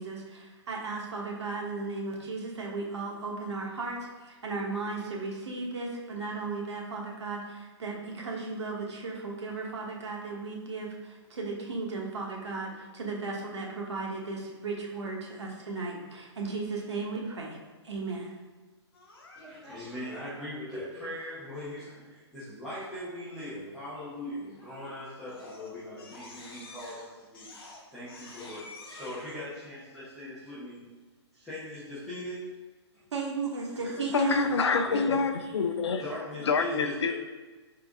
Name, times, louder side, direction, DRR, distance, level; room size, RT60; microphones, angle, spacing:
voice 1, 0.0-17.6 17.8-18.3 33.1-34.4, right 3 dB, 75° right, -1 dB, 1.2 m, -35 dB
Crying sobbing, 18.9-19.9 24.6-24.9 25.3-29.4, left 2 dB, 55° left, 0.9 m, -49 dB
voice 2, 19.3-27.5 27.9-30.9 31.3-32.5 33.8-34.4 35.4-35.7 35.9-37.1, left 1 dB, ahead, -15 dB, 0.6 m, -40 dB
voice 3, 34.1-36.0 36.5-37.1, left 4 dB, 70° left, 8 dB, 0.5 m, -26 dB
4.0 x 3.7 x 3.5 m, 1.3 s
hypercardioid pair, 175°, 15 cm